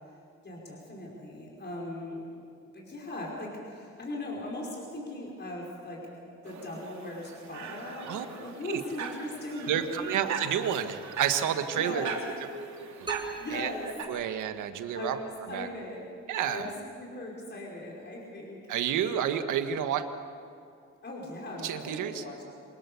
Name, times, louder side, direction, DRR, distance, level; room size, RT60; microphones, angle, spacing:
voice 1, 0.4-2.3 2.7-10.2 11.4-12.2 13.4-13.9 14.9-16.1 16.4-16.7 17.0-18.6 21.0-22.5, left 1 dB, 35° left, -2 dB, 5.4 m, -39 dB
sound 1, 6.4-14.0, right 6 dB, 65° right, 3.3 m, -40 dB
voice 2, 9.7-12.1 13.0-13.1 13.5-13.7 14.1-15.1 15.5-15.7 16.3-16.7 18.7-20.0 21.6-22.2, right 9 dB, 85° right, 8 dB, 1.7 m, -30 dB
sound 2, 13.1-15.0, right 4 dB, 15° right, 2.9 m, -41 dB
26.5 x 20.0 x 7.1 m, 2.5 s
cardioid pair, 90°, 30 cm